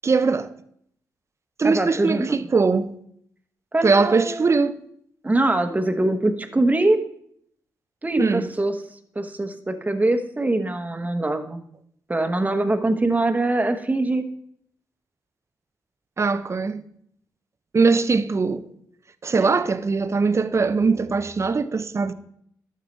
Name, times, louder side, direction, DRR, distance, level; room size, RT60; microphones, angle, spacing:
voice 1, 0.0-0.5 1.6-2.9 3.8-4.8 8.2-8.5 16.2-16.8 17.7-18.6 19.2-22.1, right 4 dB, 40° right, 0.6 m, -21 dB
voice 2, 1.6-2.5 3.7-4.7 5.2-7.0 8.0-8.7 9.1-11.6 12.1-14.3 19.3-19.5, right 2 dB, 20° right, 1.1 m, -23 dB
12.0 x 6.5 x 3.2 m
supercardioid pair, 55°, 8 cm